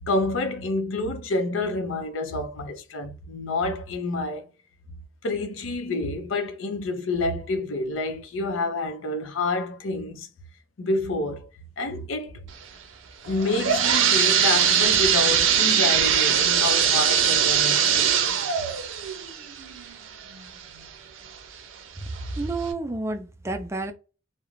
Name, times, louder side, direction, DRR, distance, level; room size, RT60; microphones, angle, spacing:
voice 1, 0.0-4.5 5.2-10.3 10.8-11.5 11.8-12.4 13.3-18.1, left 2 dB, 85° left, 0.5 m, -28 dB
sound 1, 13.2-20.9 21.3-21.4 22.2-22.3 22.7-22.8, right 8 dB, 80° right, 0.5 m, -21 dB
voice 2, 22.4-23.9, right 2 dB, 15° right, 0.4 m, -29 dB
2.4 x 2.0 x 3.0 m
head